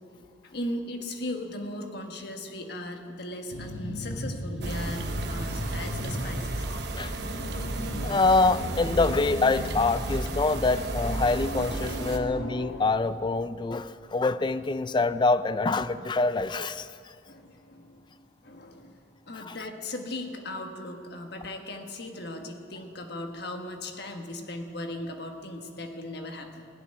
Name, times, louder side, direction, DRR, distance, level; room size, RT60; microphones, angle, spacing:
voice 1, 0.4-6.7 11.9-12.2 17.3-18.0 18.4-19.0 19.3-26.7, left 1 dB, 55° left, 4 dB, 1.4 m, -38 dB
sound 1, 3.5-6.6 7.0-10.0 10.9-12.9, left 1 dB, 80° left, 1.2 m, -37 dB
sound 2, 4.6-12.2, right 2 dB, 60° right, 1.1 m, -33 dB
voice 2, 8.0-17.1 19.4-19.6, left 3 dB, 25° left, 14 dB, 0.4 m, -25 dB
16.5 x 7.0 x 9.9 m, 2.4 s
head